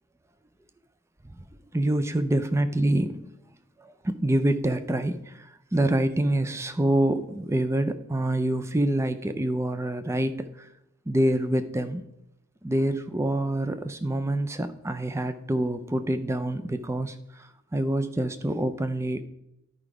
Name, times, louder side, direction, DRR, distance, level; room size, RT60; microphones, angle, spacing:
voice 1, 1.7-3.2 3.8-10.7 11.1-12.0 12.6-19.2, right 1 dB, 10° right, 10 dB, 0.4 m, -26 dB
11.0 x 5.0 x 4.8 m, 0.85 s
head